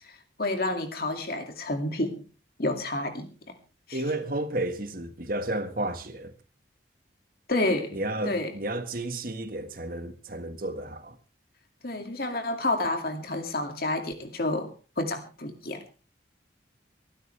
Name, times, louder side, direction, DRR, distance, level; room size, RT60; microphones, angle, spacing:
voice 1, 0.0-2.2 2.6-3.5 3.9-4.0 7.5-8.5 11.8-15.8, left 2 dB, 55° left, 2.3 m, -30 dB
voice 2, 3.9-6.3 7.9-11.2, right 1 dB, 50° right, 1.6 m, -32 dB
24.0 x 12.0 x 3.4 m
head